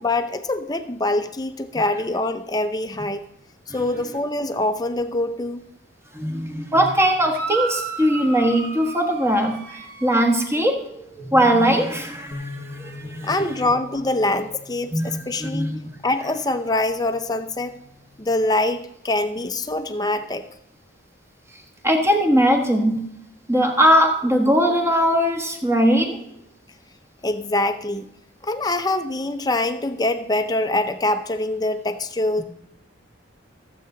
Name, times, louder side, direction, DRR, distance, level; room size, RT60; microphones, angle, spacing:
voice 1, 0.0-3.2 3.7-5.6 13.2-15.7 16.0-17.7 18.2-20.4 27.2-28.1 28.4-32.4, left 2 dB, 20° left, 8 dB, 0.6 m, -24 dB
voice 2, 6.1-10.8 11.2-13.7 14.9-15.8 21.8-23.0 23.5-26.2, equal, 15° right, 2 dB, 1.4 m, -20 dB
sound 1, 7.3-10.6, right 4 dB, 50° right, 1.3 m, -33 dB
Bass guitar, 12.3-18.5, left 3 dB, 40° left, 1.0 m, -43 dB
15.0 x 7.9 x 3.9 m, 0.80 s
head